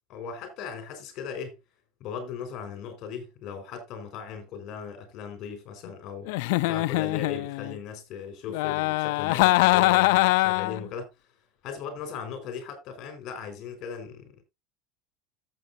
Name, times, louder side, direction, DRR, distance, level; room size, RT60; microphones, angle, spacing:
voice 1, 0.1-1.6 2.0-6.3 6.6-11.1 11.6-14.4, left 6 dB, 40° left, 4.7 m, -38 dB
Giggle, 6.3-7.8 8.5-10.8, left 20 dB, 70° left, 0.4 m, -23 dB
14.0 x 7.6 x 2.7 m
cardioid pair, 160°, 0 cm